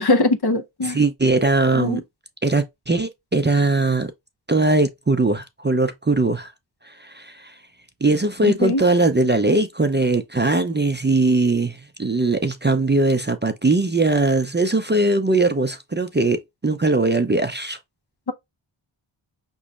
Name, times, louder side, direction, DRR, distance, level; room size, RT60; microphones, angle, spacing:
voice 1, 0.0-1.0 1.7-2.0 8.5-8.8, left 2 dB, 50° left, 0.8 m, -21 dB
voice 2, 0.8-2.0 2.4-4.1 4.5-6.5 6.8-7.5 8.0-17.8, right 2 dB, 20° right, 0.5 m, -20 dB
5.4 x 3.1 x 2.3 m
wide cardioid pair, 80°, 49 cm